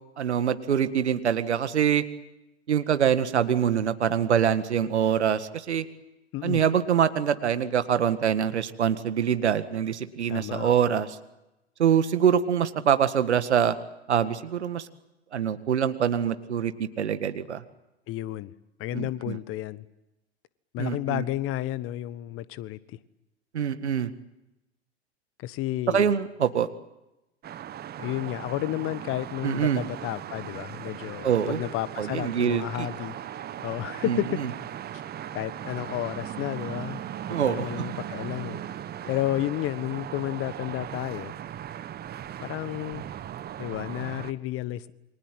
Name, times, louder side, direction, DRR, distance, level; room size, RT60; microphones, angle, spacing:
voice 1, 0.2-2.0 2.7-5.9 6.4-11.2 11.8-13.8 14.1-14.9 15.3-17.6 18.9-19.4 20.8-21.2 23.5-24.1 25.9-26.7 29.4-29.8 31.2-31.7 32.0-32.9 34.1-34.5 37.3-37.7, right 8 dB, 80° right, 11 dB, 1.9 m, -24 dB
voice 2, 10.3-10.7 18.1-18.5 18.8-19.8 20.7-22.8 25.4-26.1 28.0-33.2 33.6-34.4 35.3-37.0 37.5-38.6 39.1-41.3 42.4-43.0 43.6-44.9, left 15 dB, 40° left, 16 dB, 1.4 m, -31 dB
sound 1, 27.4-44.3, right 10 dB, 30° right, 1.4 m, -38 dB
29.0 x 24.5 x 7.7 m, 0.96 s
figure-of-eight pair, 90°, 34 cm